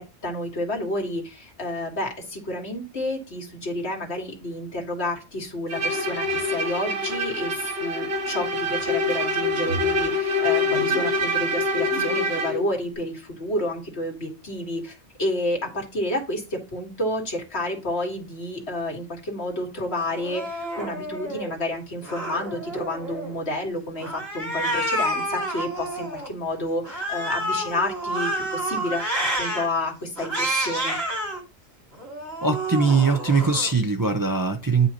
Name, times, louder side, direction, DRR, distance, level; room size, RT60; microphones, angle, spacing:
voice 1, 0.0-29.1 29.3-31.0, left 1 dB, 70° left, 2.1 m, -30 dB
Bowed string instrument, 5.7-12.6, left 1 dB, 90° right, 1.6 m, -25 dB
Cat, 20.1-21.5 22.0-23.4 24.0-26.3 26.8-29.7 30.2-31.4 31.9-33.7, right 1 dB, 60° right, 2.9 m, -29 dB
voice 2, 32.4-34.9, right 4 dB, 25° right, 0.5 m, -21 dB
9.5 x 5.4 x 2.9 m
omnidirectional pair, 1.1 m